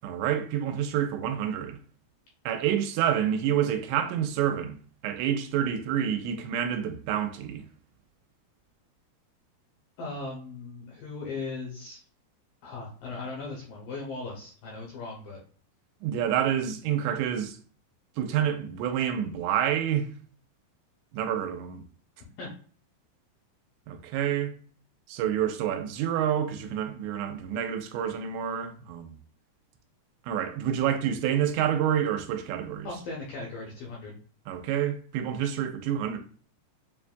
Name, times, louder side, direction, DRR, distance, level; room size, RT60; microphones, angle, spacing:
voice 1, 0.0-1.8 2.5-4.8 5.0-7.6 16.0-17.6 18.2-20.1 21.1-21.8 23.9-24.5 25.1-29.1 30.3-32.9 34.5-36.2, right 9 dB, 90° right, 2.8 m, -28 dB
voice 2, 10.0-12.0 12.6-15.4 22.4-22.5 32.8-34.2, left 3 dB, 75° left, 2.1 m, -38 dB
7.1 x 2.6 x 2.3 m
omnidirectional pair, 5.0 m